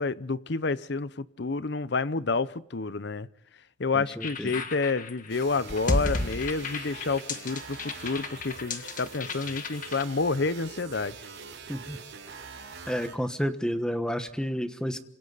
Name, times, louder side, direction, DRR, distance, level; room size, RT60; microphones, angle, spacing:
voice 1, 0.0-3.3 3.8-11.2, left 4 dB, 60° left, 0.8 m, -29 dB
voice 2, 3.9-4.6 11.7-12.0 12.9-15.0, equal, 5° left, 1.2 m, -31 dB
sound 1, 4.2-10.0, left 2 dB, 45° left, 1.7 m, -33 dB
sound 2, 5.3-13.2, right 5 dB, 80° right, 6.0 m, -44 dB
27.5 x 26.0 x 4.1 m
head